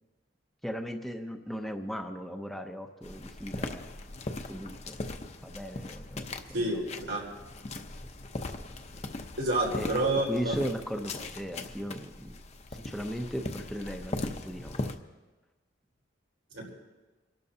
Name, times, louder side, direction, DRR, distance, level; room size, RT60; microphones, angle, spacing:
voice 1, 0.6-3.9 4.5-5.0 5.4-6.2 6.7-6.8 7.7-7.9 9.7-10.0 10.3-12.4 12.8-14.2 14.4-15.0, equal, ahead, 4 dB, 0.6 m, -37 dB
sound 1, 3.0-15.0, left 2 dB, 35° left, 0.7 m, -39 dB
voice 2, 6.5-7.2 9.4-10.6 16.5-16.7, right 2 dB, 90° right, -3 dB, 4.2 m, -29 dB
28.5 x 12.5 x 2.8 m, 1.2 s
head